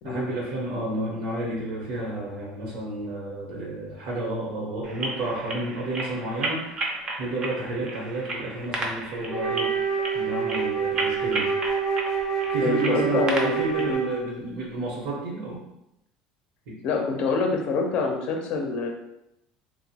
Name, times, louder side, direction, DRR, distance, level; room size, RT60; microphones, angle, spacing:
voice 1, 0.0-9.7 10.1-11.5 12.5-15.6 16.7-16.8, right 2 dB, 75° right, -3 dB, 0.9 m, -31 dB
sound 1, 4.8-14.0, right 2 dB, 35° right, 0.5 m, -34 dB
Wind instrument woodwind instrument, 9.3-14.4, right 6 dB, 10° left, 0.6 m, -27 dB
voice 2, 12.6-13.6 13.9-14.1 16.8-18.9, left 4 dB, 55° left, 2 dB, 0.5 m, -26 dB
2.9 x 2.1 x 2.8 m, 0.83 s
cardioid pair, 140°, 2 cm